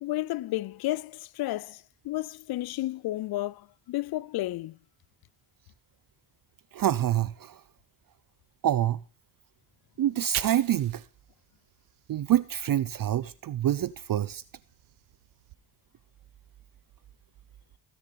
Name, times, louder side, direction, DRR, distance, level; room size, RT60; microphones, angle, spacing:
voice 1, 0.0-4.8, left 16 dB, 50° left, 0.5 m, -32 dB
voice 2, 6.7-7.6 8.6-9.0 10.0-11.0 12.1-14.4, right 11 dB, 45° right, 0.6 m, -26 dB
Fire, 10.0-13.1 13.5-15.5, right 16 dB, 70° right, 0.8 m, -44 dB
16.5 x 6.8 x 4.1 m
supercardioid pair, 60°, 49 cm